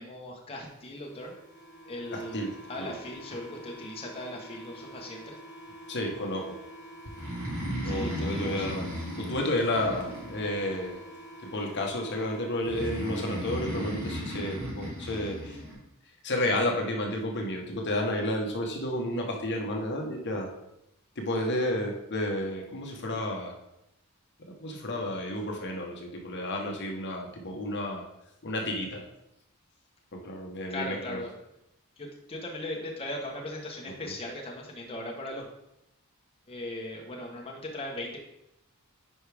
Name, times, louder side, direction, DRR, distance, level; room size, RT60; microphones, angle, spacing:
voice 1, 0.0-1.3 1.8-5.4 7.8-8.7 30.7-31.3 32.0-35.5 36.5-38.2, left 1 dB, 25° left, -1 dB, 1.1 m, -38 dB
sound 1, 1.0-13.1, right 1 dB, 10° right, 1.8 m, -47 dB
voice 2, 2.1-2.9 5.9-6.6 7.8-8.9 9.2-11.0 11.4-15.6 16.2-20.5 21.2-23.5 24.5-28.1 28.4-29.1 30.1-31.2 33.9-34.1, left 1 dB, 55° left, 1 dB, 1.1 m, -31 dB
Breathing, 7.1-10.8 12.6-15.7, equal, 65° right, 3.1 m, -35 dB
9.8 x 4.8 x 3.4 m, 0.85 s
head